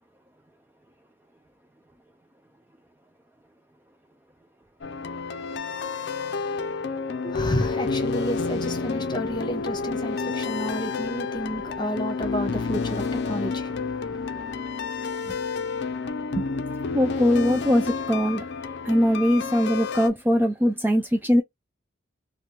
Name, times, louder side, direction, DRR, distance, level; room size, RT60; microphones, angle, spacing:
sound 1, 4.8-20.1, left 4 dB, 60° left, 0.5 m, -30 dB
voice 1, 7.2-14.6, equal, 25° left, 1.0 m, -31 dB
voice 2, 16.9-18.5 18.8-21.4, equal, 10° right, 0.3 m, -21 dB
3.4 x 2.3 x 2.8 m
head